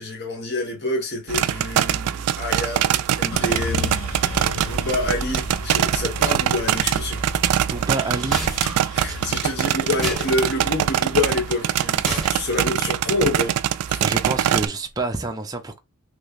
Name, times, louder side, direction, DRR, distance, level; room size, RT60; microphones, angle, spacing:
voice 1, 0.0-7.3 8.9-13.6 13.9-14.0, left 2 dB, 50° left, 1.3 m, -27 dB
sound 1, 1.3-14.7, right 10 dB, 85° right, 0.3 m, -23 dB
sound 2, 3.3-13.5 14.0-14.7, left 3 dB, 70° left, 0.8 m, -35 dB
voice 2, 7.6-8.4 8.9-9.2 14.0-15.8, right 2 dB, 15° right, 0.4 m, -28 dB
sound 3, 8.3-8.8 10.0-10.3 12.1-12.6, right 1 dB, ahead, 1.1 m, -30 dB
3.2 x 3.1 x 2.4 m
head